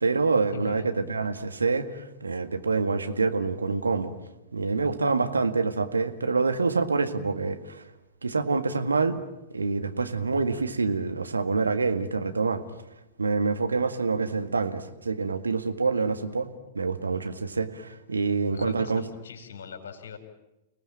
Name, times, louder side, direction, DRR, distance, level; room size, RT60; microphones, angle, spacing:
voice 1, 0.0-4.1 4.5-7.8 8.2-9.2 9.5-12.6 13.2-16.5 16.7-19.0, right 4 dB, 75° right, 8 dB, 1.9 m, -26 dB
voice 2, 0.5-0.9 15.8-16.0 18.5-20.2, left 7 dB, 60° left, 6 dB, 4.8 m, -41 dB
30.0 x 19.0 x 8.9 m, 0.96 s
figure-of-eight pair, 100°, 0 cm